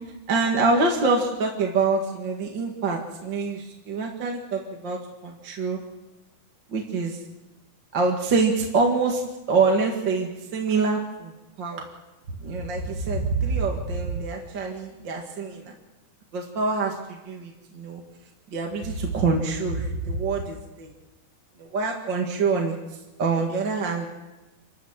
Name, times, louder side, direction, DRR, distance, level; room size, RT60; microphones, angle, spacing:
voice 1, 0.3-5.8 6.7-7.2 7.9-9.2 9.5-11.9 12.4-15.7 16.3-18.0 18.5-20.9 21.6-22.8 23.2-24.1, right 4 dB, 40° right, 0 dB, 2.2 m, -25 dB
28.0 x 13.0 x 7.4 m, 1.1 s
omnidirectional pair, 3.8 m